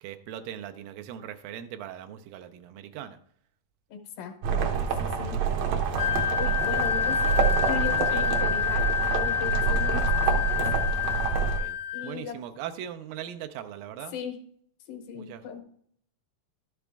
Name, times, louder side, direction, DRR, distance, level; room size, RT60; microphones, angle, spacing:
voice 1, 0.0-3.2 6.6-7.1 8.1-8.3 9.7-9.8 11.4-11.8 12.0-14.2 15.1-15.5, right 10 dB, 85° right, 8 dB, 2.4 m, -40 dB
voice 2, 3.9-4.7 5.0-5.4 6.4-7.4 7.6-8.8 9.1-10.1 10.3-10.6 11.9-12.4 14.1-14.4 14.9-15.6, left 7 dB, 80° left, 6 dB, 2.6 m, -37 dB
sound 1, 4.4-11.6, right 6 dB, 70° right, 1.6 m, -27 dB
Wind instrument woodwind instrument, 5.9-12.1, left 9 dB, 60° left, 1.1 m, -28 dB
12.0 x 6.1 x 3.4 m, 0.64 s
omnidirectional pair, 4.0 m